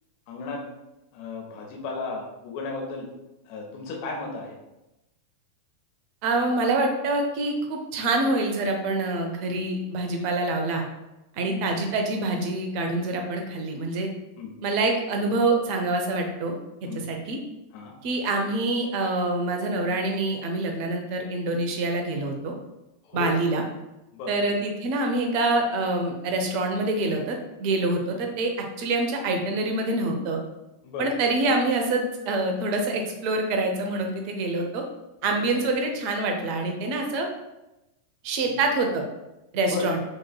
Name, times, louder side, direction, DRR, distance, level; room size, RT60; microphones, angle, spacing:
voice 1, 0.3-0.6 1.1-3.1 3.4-4.5 11.5-11.7 14.4-14.6 16.9-17.1 17.7-17.9 23.0-23.3 24.1-24.3 28.1-28.2 30.8-31.1 35.2-35.3 38.4-38.5 39.7-39.9, left 3 dB, 45° left, 0 dB, 1.0 m, -34 dB
voice 2, 6.2-10.8 11.4-14.1 14.6-17.4 18.0-22.5 23.1-23.6 24.3-28.5 28.8-30.4 31.0-34.8 35.2-37.3 38.2-39.0 39.5-40.0, right 2 dB, 45° right, 3 dB, 0.7 m, -26 dB
5.8 x 3.1 x 2.3 m, 0.96 s
figure-of-eight pair, 90°, 0 cm